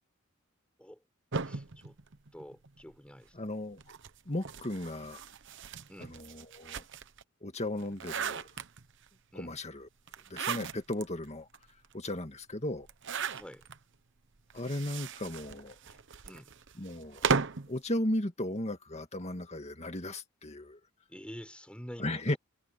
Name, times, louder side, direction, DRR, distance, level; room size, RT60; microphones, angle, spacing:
sound 1, 1.3-2.9 3.8-7.2 7.7-9.1 10.1-11.0 11.5-11.6 11.8-11.9 12.8-13.8 14.5-17.7, right 5 dB, 65° right, 1.0 m, -36 dB
voice 1, 1.4-2.0 2.3-3.5 5.9-6.1 9.3-9.6 13.3-13.7 15.9-16.0 16.2-16.5 21.1-22.4, equal, 5° left, 6.7 m, -48 dB
voice 2, 3.4-3.8 4.3-5.2 6.1-6.8 7.4-8.5 9.4-9.9 10.3-11.5 11.9-12.9 14.5-15.8 16.8-17.2 17.7-20.8 22.0-22.4, left 1 dB, 35° left, 2.3 m, -35 dB
head